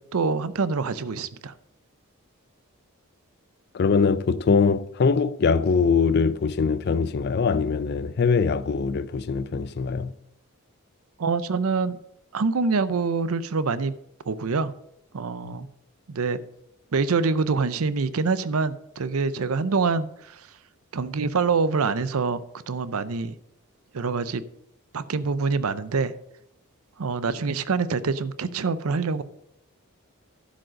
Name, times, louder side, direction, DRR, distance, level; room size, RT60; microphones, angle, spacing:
voice 1, 0.1-1.5 11.2-12.0 12.3-13.9 14.3-14.7 15.1-15.7 16.1-16.4 16.9-20.4 20.9-22.4 22.7-23.3 23.9-24.4 24.9-26.1 27.0-29.2, right 4 dB, 75° right, 0.6 m, -25 dB
voice 2, 3.7-10.1 15.5-15.6, left 5 dB, 45° left, 0.4 m, -22 dB
11.5 x 5.2 x 6.3 m
head